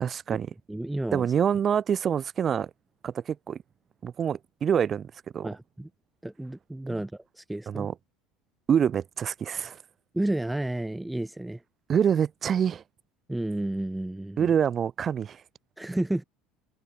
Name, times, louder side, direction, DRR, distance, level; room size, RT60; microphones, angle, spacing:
voice 1, 0.0-0.5 1.1-2.7 3.0-3.6 4.0-5.5 6.9-7.0 7.7-7.9 8.7-9.8 11.9-12.8 14.4-15.4, right 8 dB, 35° right, 0.6 m, -26 dB
voice 2, 0.7-1.3 5.4-5.9 6.2-7.9 10.1-11.6 13.3-14.5 15.8-16.2, right 1 dB, 5° right, 1.9 m, -31 dB
supercardioid pair, 125°, 0 cm